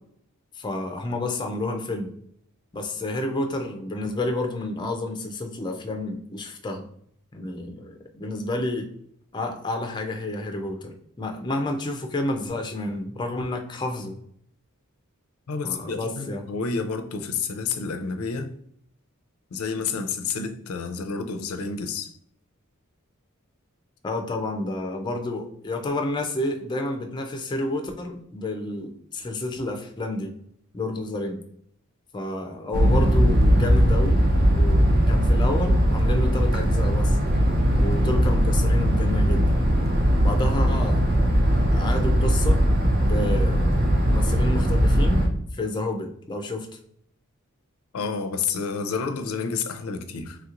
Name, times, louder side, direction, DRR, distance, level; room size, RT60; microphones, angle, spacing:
voice 1, 0.6-2.1 2.7-6.8 7.3-8.9 9.3-14.2 15.6-16.5 24.0-30.3 30.7-31.4 32.1-34.2 34.5-37.2 37.8-39.6 40.2-41.1 41.5-42.6 43.0-43.8 44.0-46.7, left 2 dB, 20° left, 0.4 m, -30 dB
voice 2, 15.5-18.5 19.5-22.1 47.9-50.4, left 5 dB, 85° left, 0.4 m, -29 dB
sound 1, 32.7-45.3, equal, 50° right, 0.6 m, -20 dB
3.1 x 2.9 x 2.4 m
head